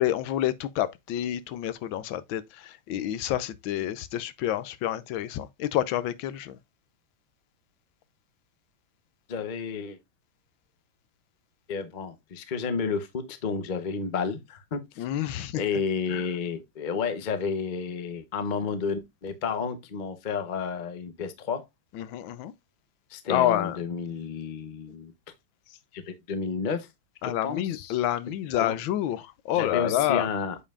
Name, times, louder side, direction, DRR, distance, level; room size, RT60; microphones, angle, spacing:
voice 1, 0.0-6.6 15.0-15.6 16.1-16.3 21.9-22.5 23.3-23.8 27.2-30.3, left 12 dB, 75° left, 1.3 m, -28 dB
voice 2, 9.3-10.0 11.7-15.0 15.5-21.6 23.1-25.1 25.7-26.9 27.2-28.0 28.6-28.8 29.5-30.6, left 5 dB, 50° left, 0.5 m, -31 dB
8.4 x 5.4 x 2.3 m
omnidirectional pair, 2.2 m